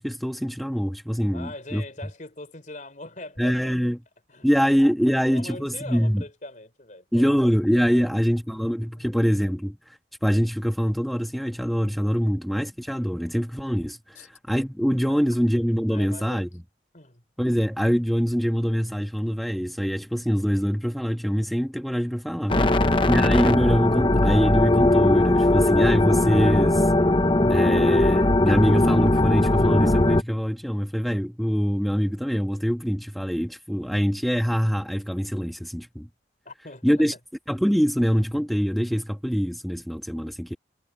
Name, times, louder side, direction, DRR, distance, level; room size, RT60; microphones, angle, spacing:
voice 1, 0.0-1.8 3.4-4.0 4.4-6.2 7.1-16.5 17.4-22.6 23.1-26.9 27.5-36.1 36.8-37.1 37.5-40.6, equal, ahead, 1.5 m, -24 dB
voice 2, 1.3-3.8 4.3-4.7 5.0-7.4 7.9-8.1 9.0-9.1 12.2-12.3 14.1-14.3 15.9-16.5 16.9-17.2 22.5-23.1 36.4-37.1, left 2 dB, 45° left, 4.5 m, -42 dB
sound 1, 22.5-30.2, left 1 dB, 30° left, 0.9 m, -19 dB
head